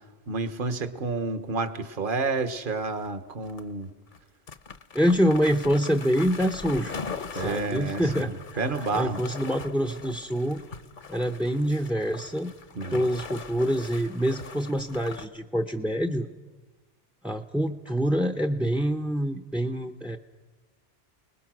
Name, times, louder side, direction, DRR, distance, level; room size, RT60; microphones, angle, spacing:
voice 1, 0.3-3.9 7.3-9.2 12.8-13.0, right 3 dB, 55° right, 11 dB, 1.3 m, -30 dB
sound 1, 2.4-3.1 3.4-3.6 4.1-4.2 4.5-15.3, left 5 dB, 50° left, 1.0 m, -40 dB
voice 2, 4.9-6.9 7.3-8.6 8.9-10.6 11.1-12.5 12.9-16.3 17.2-20.2, equal, ahead, 7 dB, 0.6 m, -26 dB
29.5 x 20.5 x 6.1 m, 1.3 s
omnidirectional pair, 1.1 m